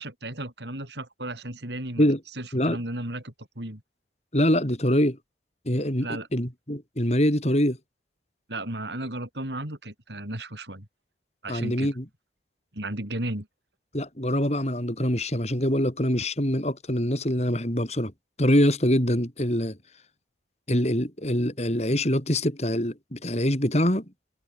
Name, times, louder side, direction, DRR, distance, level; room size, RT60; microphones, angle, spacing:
voice 1, 0.0-2.0 2.4-3.8 6.0-6.3 8.5-10.9 11.4-11.9 12.7-13.5, right 1 dB, 65° right, 5.1 m, -34 dB
voice 2, 4.3-5.2 5.7-7.8 11.5-12.0 13.9-18.1 18.4-19.8 20.7-24.0, equal, 35° left, 4.4 m, -24 dB
head